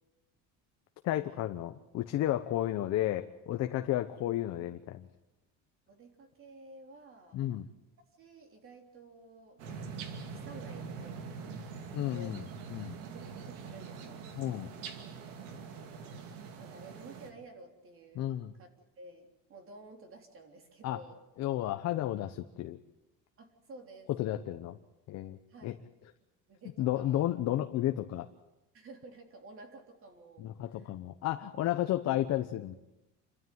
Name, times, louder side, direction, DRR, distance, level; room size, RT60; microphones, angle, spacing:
voice 1, 1.0-5.1 7.3-7.7 11.9-12.4 12.7-13.0 14.4-14.7 18.1-18.5 20.8-21.0 21.4-22.8 24.2-24.8 25.1-25.7 26.8-28.3 30.4-32.8, left 13 dB, 45° left, 7 dB, 1.0 m, -32 dB
voice 2, 5.9-7.4 8.2-12.4 13.1-14.2 15.4-16.2 16.6-18.3 18.6-18.7 19.0-21.2 23.4-24.1 24.4-24.6 25.5-25.8 26.5-27.3 28.7-30.9, right 2 dB, 35° right, 4 dB, 3.6 m, -53 dB
sound 1, 9.6-17.3, right 5 dB, 90° right, 2.6 m, -44 dB
28.0 x 13.0 x 9.4 m, 0.98 s
cardioid pair, 155°, 36 cm